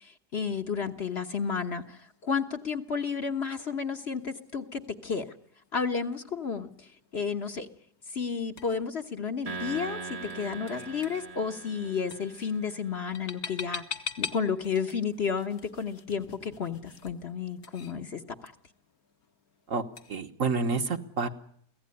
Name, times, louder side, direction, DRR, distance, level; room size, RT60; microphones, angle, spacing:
voice 1, 0.0-5.3 5.7-7.7 8.1-13.8 14.2-18.5, left 6 dB, 45° left, 6 dB, 1.3 m, -32 dB
sound 1, 0.8-20.2, left 6 dB, 65° left, 1.9 m, -46 dB
sound 2, 9.5-12.9, right 4 dB, 25° right, 1.0 m, -41 dB
voice 2, 20.1-21.3, right 4 dB, 55° right, 6 dB, 1.6 m, -28 dB
24.0 x 16.5 x 9.7 m, 0.66 s
omnidirectional pair, 1.7 m